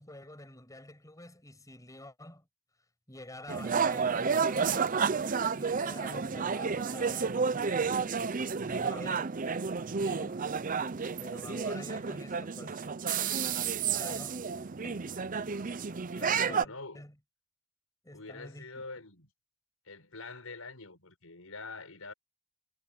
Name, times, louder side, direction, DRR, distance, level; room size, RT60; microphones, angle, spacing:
voice 1, 0.0-2.5 3.1-5.0 5.4-9.3 9.8-10.4 11.2-12.9 13.9-14.4 14.8-15.3 16.1-17.2 18.0-18.8, left 1 dB, 15° left, 6.5 m, -48 dB
sound 1, 3.5-16.6, right 5 dB, 40° right, 0.6 m, -31 dB
voice 2, 16.1-17.0 18.1-19.3 19.9-22.1, left 3 dB, 90° left, 5.8 m, -45 dB
head